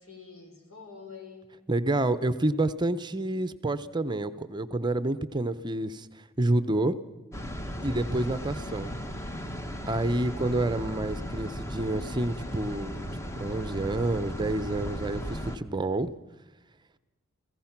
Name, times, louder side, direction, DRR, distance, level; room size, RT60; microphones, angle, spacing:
voice 1, 0.0-1.5, left 5 dB, 85° left, 4 dB, 4.1 m, -48 dB
voice 2, 1.7-7.0 7.8-8.9 9.9-16.1, right 2 dB, 20° right, 13 dB, 0.7 m, -29 dB
sound 1, 7.3-15.6, equal, 15° left, 1.1 m, -36 dB
29.5 x 16.0 x 5.9 m, 1.1 s
head